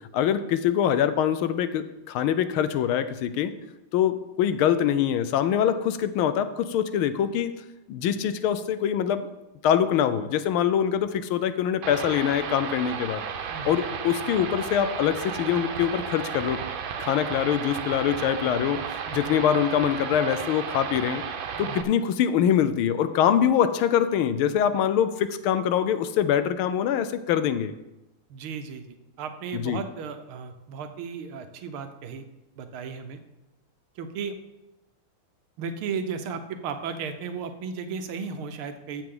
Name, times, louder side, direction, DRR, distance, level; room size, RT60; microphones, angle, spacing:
voice 1, 0.1-3.5 3.9-7.5 7.9-9.3 9.6-13.2 13.6-16.6 17.0-18.8 19.1-21.2 21.6-27.7 29.5-29.8, left 9 dB, 85° left, 12 dB, 1.5 m, -24 dB
sound 1, 11.8-21.8, right 7 dB, 75° right, 1.6 m, -33 dB
voice 2, 28.3-32.2 32.6-33.2 34.0-34.4 35.6-39.0, right 5 dB, 90° right, 8 dB, 1.7 m, -35 dB
14.0 x 7.7 x 3.8 m, 1.0 s
omnidirectional pair, 2.3 m